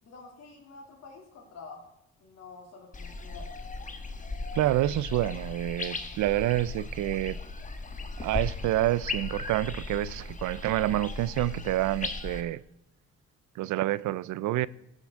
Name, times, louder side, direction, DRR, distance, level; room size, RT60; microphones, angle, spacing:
voice 1, 0.0-1.9 2.2-3.5, left 4 dB, 55° left, 2.7 m, -48 dB
sound 1, 2.9-12.4, left 3 dB, 25° left, 1.2 m, -37 dB
voice 2, 4.5-7.4 8.2-12.6 13.6-14.7, right 15 dB, 75° right, 0.5 m, -28 dB
15.5 x 7.7 x 3.6 m
cardioid pair, 90°, 30 cm